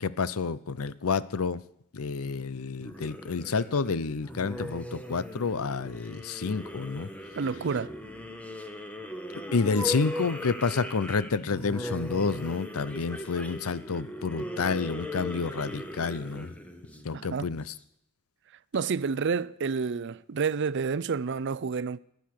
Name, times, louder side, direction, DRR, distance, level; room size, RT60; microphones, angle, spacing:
voice 1, 0.0-1.6 1.9-7.1 9.5-16.5 17.0-17.7, left 4 dB, 75° left, 0.6 m, -29 dB
sound 1, 2.8-17.7, equal, 5° left, 1.1 m, -39 dB
voice 2, 7.4-7.9 17.1-17.5 18.7-22.0, right 5 dB, 55° right, 0.5 m, -29 dB
15.0 x 10.5 x 6.5 m
head